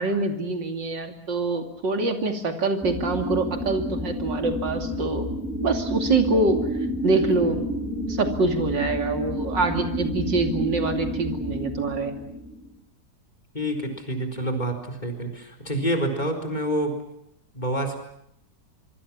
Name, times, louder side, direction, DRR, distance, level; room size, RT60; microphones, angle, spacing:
voice 1, 0.0-5.2 5.6-6.6 7.0-7.6 8.1-12.1, right 3 dB, 90° right, 5 dB, 3.4 m, -25 dB
sound 1, 2.8-12.7, equal, 5° right, 5.5 m, -30 dB
voice 2, 13.5-16.9 17.5-18.0, right 1 dB, 25° left, 5 dB, 4.3 m, -27 dB
25.5 x 24.0 x 7.4 m, 0.78 s
omnidirectional pair, 1.9 m